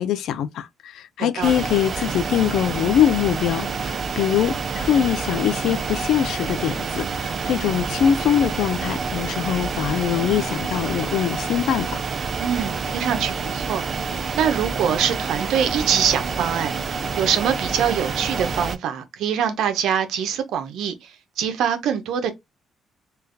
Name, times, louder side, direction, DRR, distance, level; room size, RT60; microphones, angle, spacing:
voice 1, 0.0-12.0, left 10 dB, 80° left, 0.4 m, -23 dB
voice 2, 1.2-1.5 12.4-14.1 14.4-16.7 17.2-22.3, right 8 dB, 80° right, 0.7 m, -24 dB
sound 1, 1.4-18.8, right 5 dB, 50° right, 0.4 m, -28 dB
3.3 x 2.3 x 3.3 m
cardioid pair, 90°, 0 cm